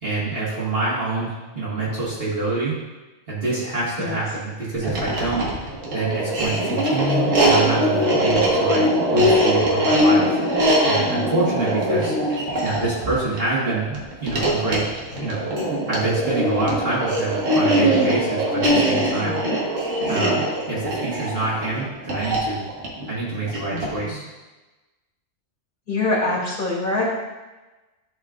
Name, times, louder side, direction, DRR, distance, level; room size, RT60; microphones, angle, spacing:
voice 1, 0.0-2.7 3.3-5.5 5.9-8.8 9.1-10.4 10.8-12.1 12.6-14.9 15.2-15.4 15.9-19.4 20.1-20.4 20.7-22.6 23.1-24.2, right 3 dB, 45° right, -7 dB, 1.8 m, -26 dB
sound 1, 4.8-24.0, equal, 70° right, 1.6 m, -21 dB
voice 2, 23.7-24.2 25.9-27.0, left 2 dB, 40° left, -6 dB, 2.7 m, -25 dB
11.5 x 4.4 x 2.4 m, 1.2 s
omnidirectional pair, 1.4 m